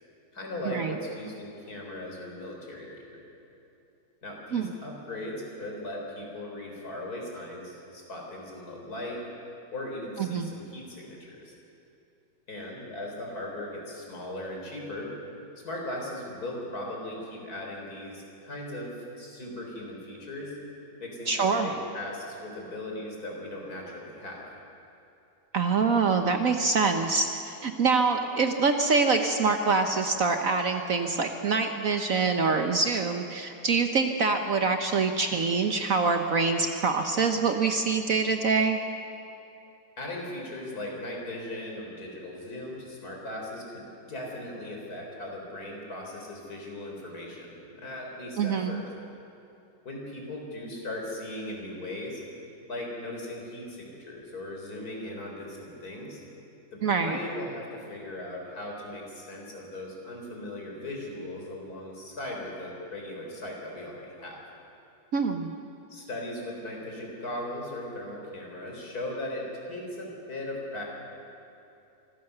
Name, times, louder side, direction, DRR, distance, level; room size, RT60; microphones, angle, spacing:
voice 1, 0.3-3.2 4.2-9.2 9.7-11.5 12.5-15.2 15.6-20.6 21.0-24.4 40.0-48.9 49.8-52.2 52.7-56.2 56.7-64.4 65.9-70.9, left 1 dB, 55° left, -1 dB, 4.4 m, -38 dB
voice 2, 21.3-21.7 25.5-38.8 48.4-48.8 56.8-57.2 65.1-65.5, right 4 dB, 55° right, 6 dB, 1.2 m, -25 dB
25.5 x 15.5 x 6.7 m, 2.8 s
omnidirectional pair, 2.0 m